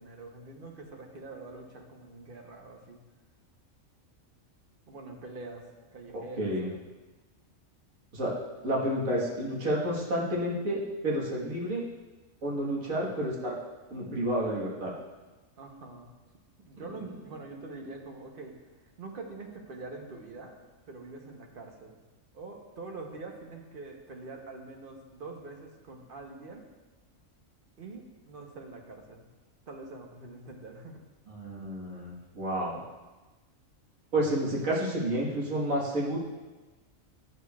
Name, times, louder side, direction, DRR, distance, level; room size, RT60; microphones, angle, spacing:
voice 1, 0.0-3.0 4.9-5.6 5.9-6.8 12.8-13.2 15.6-16.1 16.7-18.5 19.0-20.5 20.9-22.0 22.3-26.7 27.8-29.3 29.7-31.0, right 3 dB, 45° right, 1 dB, 1.0 m, -44 dB
voice 2, 6.1-6.7 8.1-8.4 8.6-11.8 12.4-13.6 13.9-14.9 31.3-32.9 34.1-36.2, right 1 dB, 80° right, -4 dB, 1.9 m, -30 dB
11.0 x 6.6 x 2.3 m, 1.2 s
omnidirectional pair, 1.4 m